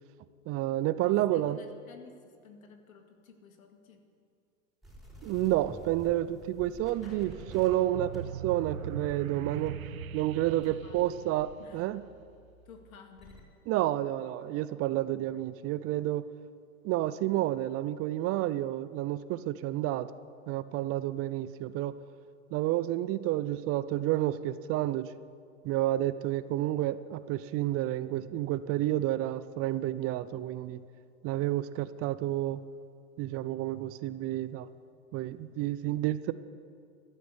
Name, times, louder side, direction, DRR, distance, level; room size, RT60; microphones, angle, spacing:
voice 1, 0.5-1.6 5.2-9.8 10.1-12.0 13.7-16.3 16.8-20.1 20.5-21.9 22.5-25.1 25.6-30.8 31.2-32.6 33.2-34.7 35.1-36.3, right 14 dB, 35° right, 16 dB, 0.5 m, -30 dB
voice 2, 1.1-4.0 7.0-7.3 10.6-11.1 11.6-11.8 12.7-13.5, left 5 dB, 80° left, 4 dB, 2.3 m, -54 dB
sound 1, 4.8-11.1 11.4-13.4, equal, ahead, 4.6 m, -51 dB
sound 2, 7.1-12.1, right 8 dB, 80° right, 0.9 m, -41 dB
14.5 x 12.5 x 8.1 m, 2.3 s
hypercardioid pair, 95°, 41 cm